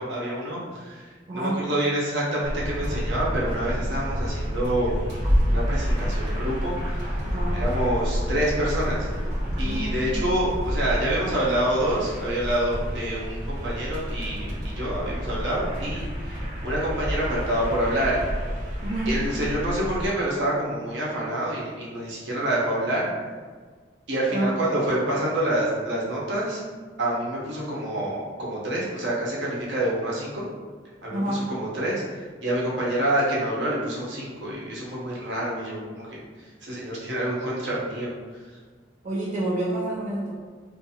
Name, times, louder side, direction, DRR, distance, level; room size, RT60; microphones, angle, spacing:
voice 1, 0.0-4.9 5.5-7.1 7.5-9.1 9.6-18.2 19.1-23.1 24.1-26.6 27.0-30.4 31.0-38.1, right 1 dB, 85° right, -5 dB, 0.8 m, -27 dB
voice 2, 1.3-1.6 7.3-7.6 9.6-10.0 18.8-19.2 24.3-24.6 31.1-31.5 39.0-40.3, right 1 dB, 40° right, -6 dB, 0.5 m, -28 dB
sound 1, 2.4-20.1, equal, 60° right, 0.9 m, -29 dB
2.5 x 2.5 x 2.7 m, 1.5 s
head